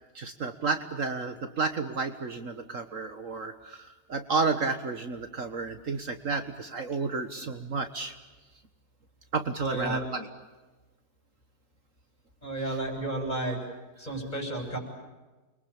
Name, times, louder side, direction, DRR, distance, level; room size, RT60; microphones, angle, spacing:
voice 1, 0.2-8.1 9.3-10.3 12.7-12.8, right 4 dB, 55° right, 8 dB, 1.8 m, -31 dB
voice 2, 9.6-10.1 12.4-13.6 14.0-14.8, right 2 dB, 25° left, 2 dB, 7.7 m, -32 dB
29.5 x 23.0 x 8.8 m, 1.2 s
omnidirectional pair, 1.7 m